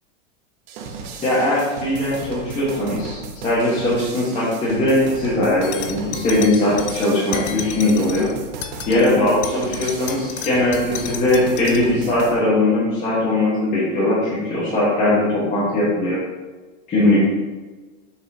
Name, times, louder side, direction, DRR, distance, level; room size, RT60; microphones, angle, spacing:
sound 1, 0.7-12.4, right 4 dB, 50° right, 1.0 m, -35 dB
voice 1, 1.2-8.3 8.9-16.2 16.9-17.3, left 1 dB, 20° left, -9 dB, 1.4 m, -20 dB
sound 2, 5.6-8.3 8.6-9.1 9.4-11.9, left 9 dB, 45° left, 0.5 m, -33 dB
6.9 x 5.5 x 2.8 m, 1.3 s
supercardioid pair, 160°, 39 cm